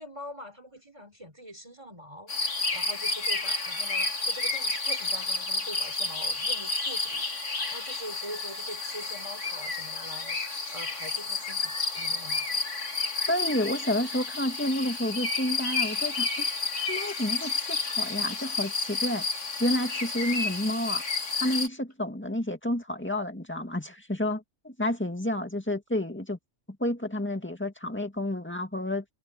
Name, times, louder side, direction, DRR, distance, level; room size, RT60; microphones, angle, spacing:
voice 1, 0.0-12.6, equal, 25° right, 4.1 m, -44 dB
sound 1, 2.3-21.7, left 3 dB, 80° left, 2.9 m, -31 dB
voice 2, 13.3-16.5 16.9-19.2 19.6-21.0 21.4-26.4 26.8-29.0, left 1 dB, 10° left, 2.0 m, -30 dB
omnidirectional pair, 1.3 m